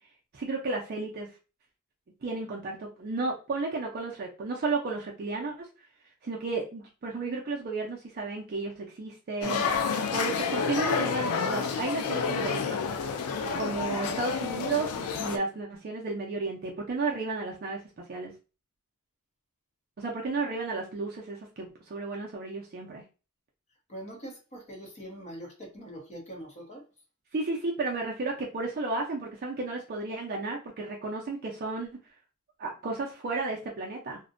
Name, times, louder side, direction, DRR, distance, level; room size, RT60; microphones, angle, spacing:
voice 1, 0.3-1.3 2.2-5.7 6.2-9.6 10.1-12.8 13.6-18.3 20.0-23.0 27.3-32.0 32.6-34.2, right 3 dB, 45° right, 0.4 m, -33 dB
sound 1, 9.4-15.4, left 5 dB, 80° left, 0.4 m, -29 dB
voice 2, 23.9-26.8, right 1 dB, 30° left, 0.7 m, -43 dB
2.5 x 2.1 x 2.4 m
head